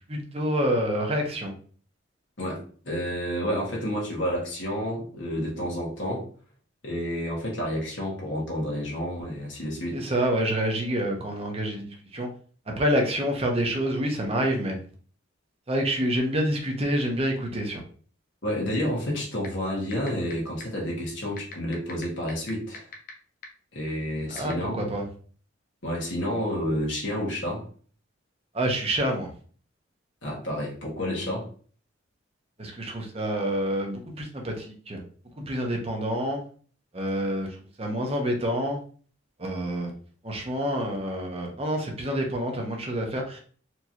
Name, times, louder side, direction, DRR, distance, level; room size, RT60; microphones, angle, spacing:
voice 1, 0.1-1.5 9.9-12.3 12.7-14.8 15.7-17.8 24.3-25.0 28.5-29.3 32.6-35.0 35.4-36.4 36.9-38.8 39.4-39.9 40.2-43.4, equal, 30° right, 2 dB, 0.9 m, -27 dB
voice 2, 2.4-6.3 6.8-10.1 18.4-22.9 23.7-24.8 25.8-27.7 30.2-31.5, equal, 70° left, -3 dB, 1.6 m, -30 dB
sound 1, 19.4-19.5 19.9-20.3 20.6-20.7 21.4-23.1 23.4-23.5 24.4-24.5, left 8 dB, 45° left, 0.8 m, -39 dB
4.4 x 2.9 x 2.8 m, 0.43 s
head